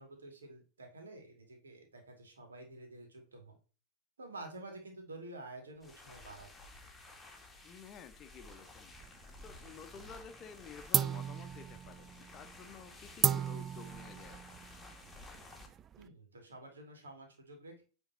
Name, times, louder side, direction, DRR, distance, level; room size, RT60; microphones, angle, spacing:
voice 1, 0.0-3.6 4.2-6.5 16.0-17.8, right 2 dB, 70° right, 3 dB, 2.2 m, -50 dB
sound 1, 5.8-15.7, left 2 dB, 10° left, 1.7 m, -54 dB
voice 2, 7.6-14.4, left 6 dB, 30° left, 8 dB, 0.9 m, -52 dB
sound 2, 9.0-9.9 10.2-10.6 10.9-16.1, right 9 dB, 25° right, 0.3 m, -35 dB
9.0 x 3.6 x 4.2 m, 0.36 s
figure-of-eight pair, 90°, 0 cm